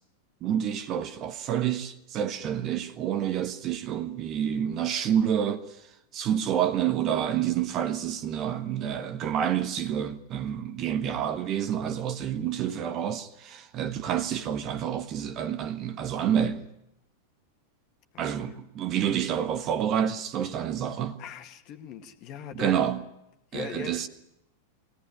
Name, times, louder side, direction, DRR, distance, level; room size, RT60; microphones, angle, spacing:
voice 1, 0.4-5.7 6.1-16.7 18.2-21.2 22.5-23.0 23.5-24.1, right 9 dB, 35° right, 1.5 m, -28 dB
voice 2, 18.1-18.6 21.2-22.8 23.5-24.1, left 8 dB, 40° left, 2.0 m, -41 dB
22.5 x 17.5 x 9.9 m
figure-of-eight pair, 90°, 0 cm